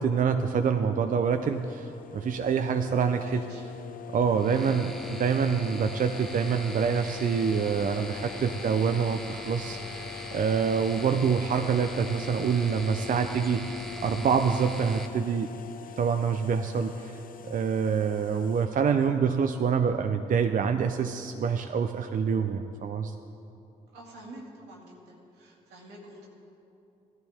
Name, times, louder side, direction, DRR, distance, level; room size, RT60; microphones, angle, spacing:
voice 1, 0.0-3.4 4.1-15.5 16.0-23.1, right 6 dB, 50° right, 7 dB, 0.5 m, -26 dB
sound 1, 0.8-18.7, left 8 dB, 55° left, 0.6 m, -43 dB
voice 2, 3.1-3.6 4.2-4.4 23.9-26.3, right 1 dB, 85° right, -2 dB, 2.0 m, -48 dB
sound 2, 4.4-15.1, left 1 dB, ahead, 1.0 m, -41 dB
15.5 x 11.0 x 3.5 m, 2.8 s
supercardioid pair, 50°, 17 cm